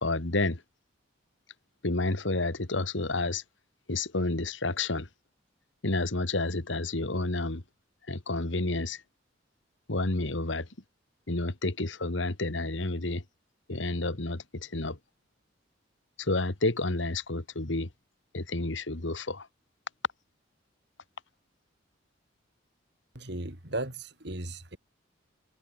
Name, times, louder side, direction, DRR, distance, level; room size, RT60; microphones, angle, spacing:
voice 1, 0.0-0.6 1.8-3.4 3.9-5.1 5.8-7.6 8.1-9.0 9.9-10.7 11.3-13.2 13.7-15.0 16.2-17.9 18.3-19.5, left 2 dB, 75° left, 1.9 m, -30 dB
voice 2, 23.2-24.8, right 2 dB, 60° right, 3.6 m, -36 dB
head